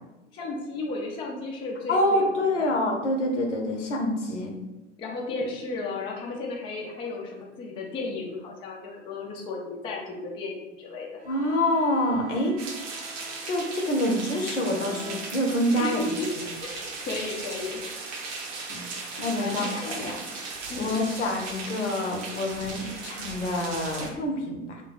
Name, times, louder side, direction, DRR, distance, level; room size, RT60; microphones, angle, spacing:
voice 1, 0.3-2.7 5.0-11.2 15.7-16.3 16.6-17.9 19.4-20.2 20.7-21.0, left 3 dB, 15° left, -1 dB, 0.4 m, -34 dB
voice 2, 1.9-4.5 11.3-12.6 13.4-16.0 18.4-18.8 19.2-20.1 20.7-24.8, left 1 dB, 70° left, 1 dB, 0.8 m, -27 dB
Bowed string instrument, 11.2-15.8, right 1 dB, 70° right, 0.8 m, -48 dB
sound 1, 12.6-24.1, right 4 dB, 40° right, 0.7 m, -37 dB
3.5 x 2.2 x 4.0 m, 1.0 s
figure-of-eight pair, 85°, 37 cm